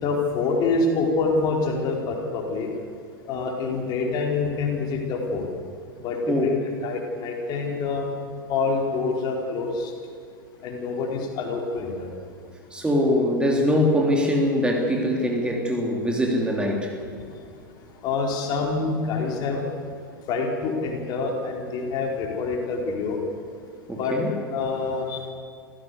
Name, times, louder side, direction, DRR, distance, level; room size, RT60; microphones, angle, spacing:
voice 1, 0.0-2.7 3.3-5.5 6.0-8.1 8.5-9.9 10.6-12.1 18.0-19.6 20.3-23.2 24.0-24.1 24.5-25.2, left 4 dB, 35° left, 1 dB, 4.3 m, -26 dB
voice 2, 12.7-16.9 23.9-24.3, equal, 10° right, 0 dB, 3.3 m, -23 dB
26.5 x 15.5 x 8.2 m, 2.2 s
figure-of-eight pair, 90°, 12 cm